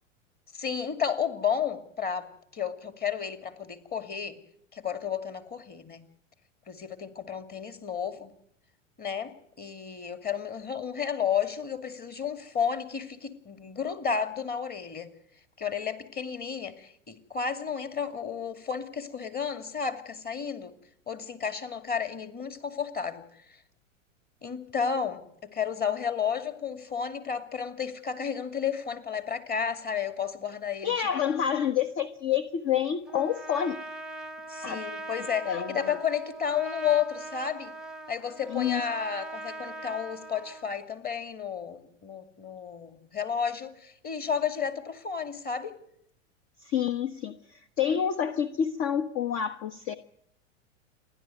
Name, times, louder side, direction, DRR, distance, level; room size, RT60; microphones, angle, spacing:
voice 1, 0.5-4.4 4.7-6.0 6.7-8.3 9.0-15.1 15.6-20.7 21.1-23.2 24.4-25.2 25.5-31.1 34.5-37.7 38.1-45.7, left 7 dB, 25° left, 2.5 m, -32 dB
voice 2, 30.8-33.8 34.6-34.8 35.4-35.8 38.5-38.8 46.6-49.9, left 8 dB, 40° left, 1.2 m, -28 dB
Trumpet, 33.1-40.7, right 2 dB, ahead, 1.1 m, -41 dB
29.0 x 11.5 x 9.3 m
hypercardioid pair, 95°, 39 cm